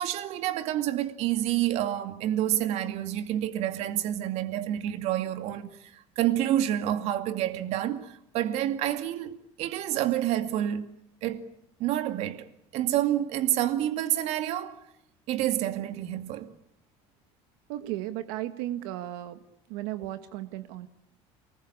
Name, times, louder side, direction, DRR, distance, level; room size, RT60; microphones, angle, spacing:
voice 1, 0.0-10.9 11.2-11.4 11.8-12.5 12.7-14.8 15.3-16.5, right 12 dB, 60° right, 2.3 m, -28 dB
voice 2, 17.7-19.4 19.7-20.9, right 14 dB, 90° right, 1.6 m, -35 dB
29.0 x 21.0 x 8.6 m
cardioid pair, 155°, 13 cm